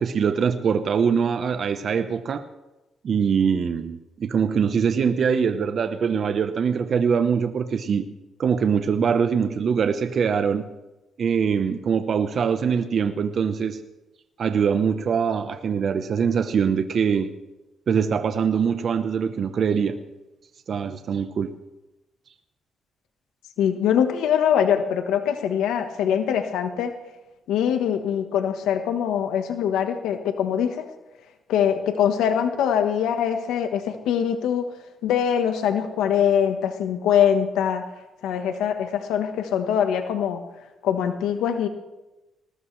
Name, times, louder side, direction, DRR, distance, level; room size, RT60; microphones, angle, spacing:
voice 1, 0.0-2.4 3.0-8.0 8.4-10.6 11.2-13.8 14.4-17.3 17.9-20.0 20.7-21.5, right 6 dB, 55° right, 9 dB, 0.9 m, -23 dB
voice 2, 23.6-26.9 27.5-30.8 31.5-34.6 35.0-37.8 38.2-40.4 40.8-41.7, left 8 dB, 85° left, 7 dB, 1.2 m, -23 dB
20.0 x 19.0 x 3.3 m, 1.0 s
cardioid pair, 90°, 0 cm